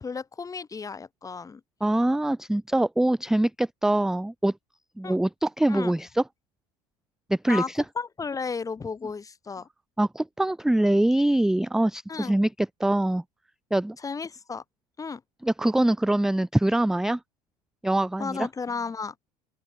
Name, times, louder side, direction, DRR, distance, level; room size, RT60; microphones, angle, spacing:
voice 1, 0.0-1.6 5.0-5.2 5.7-5.9 7.5-9.7 12.1-12.4 14.0-14.6 15.0-15.2 18.2-19.1, left 5 dB, 15° left, 1.0 m, -33 dB
voice 2, 1.8-4.5 5.0-6.2 7.3-7.8 10.0-13.2 13.7-14.0 15.4-17.2 17.8-18.4, right 1 dB, ahead, 0.5 m, -24 dB
open air
figure-of-eight pair, 70°, 21 cm